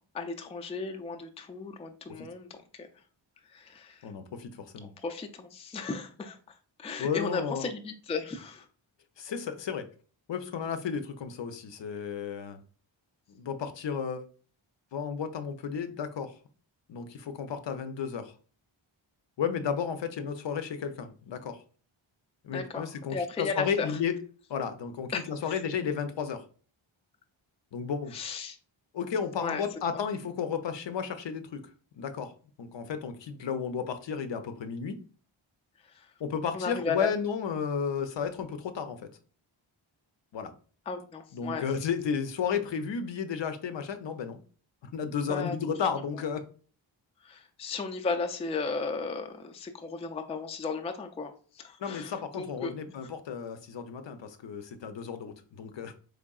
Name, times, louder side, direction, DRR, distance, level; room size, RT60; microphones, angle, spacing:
voice 1, 0.1-2.9 3.5-4.1 5.0-8.7 22.5-23.9 25.1-25.6 28.1-28.6 29.4-29.6 29.9-30.0 35.8-36.1 36.5-37.1 40.9-41.6 45.3-45.6 47.2-52.7, left 4 dB, 15° left, 0.3 m, -35 dB
voice 2, 4.0-4.9 7.0-7.7 9.2-9.8 10.3-12.6 13.3-14.2 14.9-16.3 16.9-18.3 19.4-21.6 22.4-24.1 24.5-26.4 27.7-28.2 28.9-31.7 32.0-32.3 32.6-35.0 36.2-39.0 40.3-40.5 41.3-44.4 44.8-46.4 51.8-55.9, left 6 dB, 65° left, 0.6 m, -33 dB
3.7 x 3.3 x 2.3 m
cardioid pair, 65°, 48 cm